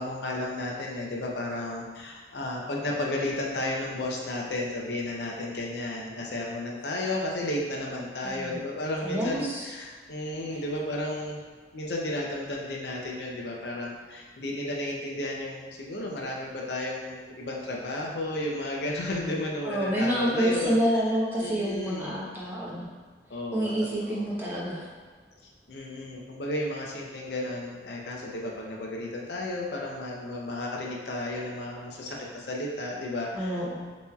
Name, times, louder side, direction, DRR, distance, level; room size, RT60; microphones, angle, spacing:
voice 1, 0.0-11.4 11.7-20.7 21.4-22.2 23.3-24.2 25.7-33.6, left 1 dB, 70° left, -1 dB, 0.6 m, -33 dB
voice 2, 8.2-8.6 9.0-9.7 19.6-22.9 23.5-24.8 33.3-33.8, right 1 dB, 10° right, -6 dB, 0.8 m, -28 dB
6.8 x 3.0 x 2.3 m, 1.4 s
head